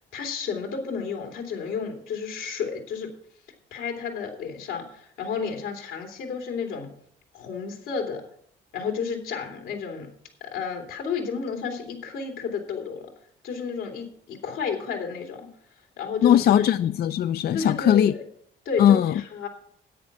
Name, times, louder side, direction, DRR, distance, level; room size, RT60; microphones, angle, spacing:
voice 1, 0.1-3.1 3.7-6.9 7.3-8.2 8.7-10.1 10.4-13.1 13.4-15.5 16.0-16.5 17.5-18.2 18.6-19.5, left 6 dB, 90° left, 2.7 m, -31 dB
voice 2, 16.2-18.1 18.8-19.1, left 10 dB, 55° left, 0.4 m, -19 dB
10.0 x 8.6 x 5.9 m
cardioid pair, 90°, 20 cm